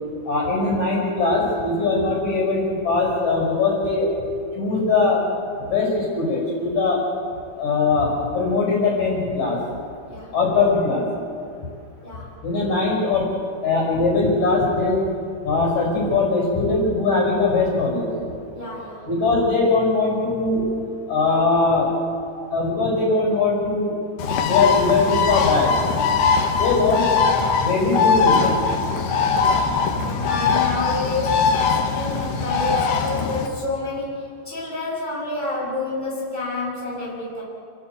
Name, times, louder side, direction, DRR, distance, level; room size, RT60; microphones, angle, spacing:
voice 1, 0.2-4.1 4.6-5.2 5.7-7.0 7.6-9.6 10.3-11.1 12.4-13.3 13.6-15.0 15.4-18.1 19.1-20.6 21.1-21.9 22.5-23.9 24.4-25.7 26.6-27.3 27.6-28.6 30.4-30.5 32.7-32.8, left 3 dB, 40° left, -2 dB, 6.6 m, -21 dB
voice 2, 18.5-19.1 22.4-22.5 29.3-29.5 30.2-37.4, left 2 dB, 10° right, -5 dB, 5.2 m, -29 dB
Bird, 24.2-33.5, left 5 dB, 85° left, 3.9 m, -21 dB
28.5 x 16.0 x 8.2 m, 2.5 s
omnidirectional pair, 5.0 m